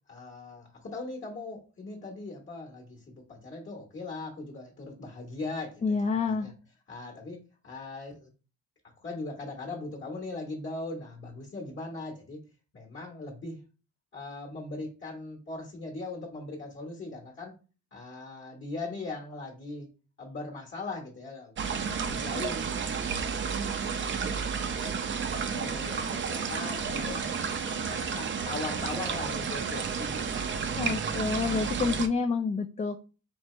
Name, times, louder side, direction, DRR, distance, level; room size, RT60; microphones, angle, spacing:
voice 1, 0.1-6.5 6.9-8.3 9.0-12.5 12.7-13.6 14.1-17.5 17.9-19.9 20.2-22.7 23.0-24.9 25.3-27.3 27.7-31.2, left 3 dB, 40° left, 0 dB, 1.4 m, -40 dB
voice 2, 5.8-6.5 30.7-33.0, left 5 dB, 25° left, 6 dB, 0.4 m, -28 dB
sound 1, 21.6-32.1, right 6 dB, 40° right, 0.6 m, -31 dB
4.5 x 2.8 x 3.2 m, 0.34 s
cardioid pair, 90°, 30 cm